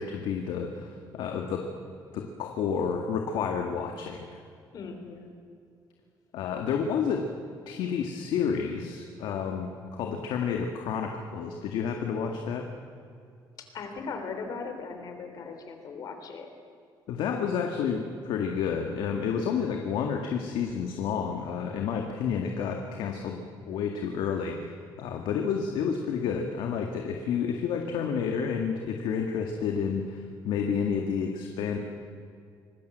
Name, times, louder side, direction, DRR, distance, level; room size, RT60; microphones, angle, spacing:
voice 1, 0.0-1.7 2.1-4.3 6.3-7.3 7.7-12.7 17.1-24.7 25.0-31.8, left 6 dB, 85° left, 3 dB, 2.0 m, -30 dB
voice 2, 4.7-5.3 13.7-16.5, left 4 dB, 50° left, 6 dB, 3.7 m, -38 dB
25.5 x 19.5 x 8.0 m, 2.4 s
cardioid pair, 165°, 8 cm